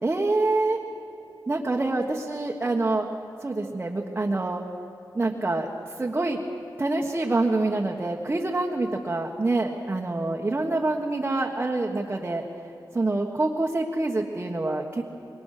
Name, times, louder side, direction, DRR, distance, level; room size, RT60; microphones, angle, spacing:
voice 1, 0.0-0.8 1.5-3.1 3.4-4.6 5.1-5.7 6.0-6.4 6.8-12.4 12.9-15.1, right 2 dB, 25° right, -1 dB, 1.5 m, -26 dB
27.5 x 23.0 x 6.7 m, 3.0 s
wide cardioid pair, 160°, 8 cm